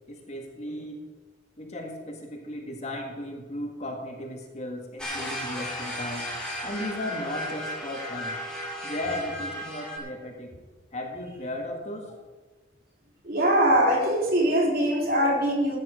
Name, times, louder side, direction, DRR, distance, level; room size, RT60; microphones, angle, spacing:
voice 1, 0.1-1.0 1.6-8.4 8.8-10.6 10.9-12.2, left 1 dB, 40° left, 2 dB, 2.0 m, -36 dB
sound 1, 5.0-10.0, equal, 5° left, 2.7 m, -35 dB
voice 2, 13.2-15.8, equal, 55° right, -1 dB, 3.5 m, -22 dB
15.0 x 9.3 x 5.2 m, 1.2 s
head